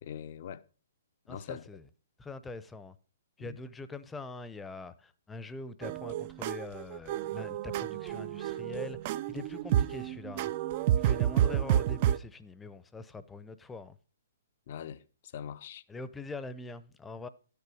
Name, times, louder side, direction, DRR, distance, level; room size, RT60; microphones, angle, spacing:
voice 1, 0.0-0.6 1.3-1.6 3.4-3.6 11.3-11.5 14.7-15.8, left 9 dB, 50° left, 0.7 m, -43 dB
voice 2, 1.3-1.8 2.2-3.0 3.4-10.5 10.9-14.0 15.9-17.3, left 3 dB, 10° left, 0.7 m, -43 dB
sound 1, 5.8-12.2, right 11 dB, 40° right, 0.5 m, -30 dB
12.0 x 6.9 x 4.9 m
hypercardioid pair, 130°, 0 cm